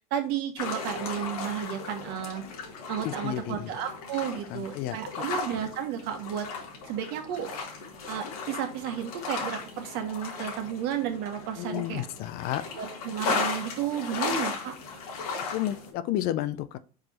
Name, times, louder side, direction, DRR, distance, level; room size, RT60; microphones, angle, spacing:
voice 1, 0.1-2.4 2.9-6.5 6.9-7.5 8.1-12.1 12.8-14.7, right 9 dB, 60° right, 6 dB, 1.3 m, -32 dB
sound 1, 0.6-15.9, left 4 dB, 85° left, 1.7 m, -36 dB
voice 2, 3.0-3.7 4.3-5.2 11.6-12.6 14.3-14.4 15.5-16.8, left 13 dB, 55° left, 13 dB, 0.6 m, -32 dB
4.7 x 4.7 x 4.2 m, 0.38 s
supercardioid pair, 105°, 19 cm